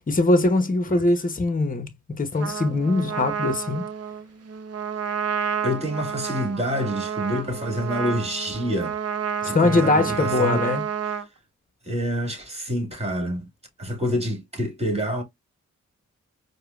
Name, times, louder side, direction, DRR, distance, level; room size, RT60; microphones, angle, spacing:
voice 1, 0.1-3.9 9.4-10.8, left 2 dB, 30° left, 0.9 m, -22 dB
Trumpet, 2.4-11.3, right 7 dB, 55° right, 0.7 m, -30 dB
voice 2, 5.6-9.0 9.4-10.6 11.8-13.5 13.8-15.2, equal, 20° right, 2.1 m, -27 dB
4.7 x 2.2 x 2.4 m
cardioid pair, 50°, 29 cm